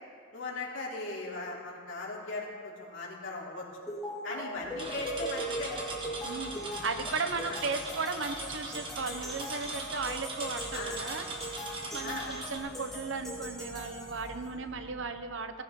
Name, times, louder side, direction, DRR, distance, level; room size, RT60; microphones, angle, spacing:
voice 1, 0.3-3.7 4.2-5.7 7.4-7.6 10.7-11.0 12.0-12.3, left 2 dB, 70° left, -4 dB, 3.3 m, -38 dB
sound 1, 3.9-14.5, equal, ahead, 4.4 m, -40 dB
voice 2, 4.3-4.6 6.2-11.3 11.9-15.6, right 4 dB, 70° right, 8 dB, 0.9 m, -36 dB
sound 2, 4.5-15.1, equal, 55° left, 2.9 m, -51 dB
sound 3, 4.8-12.6, right 2 dB, 25° right, 1.6 m, -41 dB
18.0 x 15.5 x 3.8 m, 2.2 s
head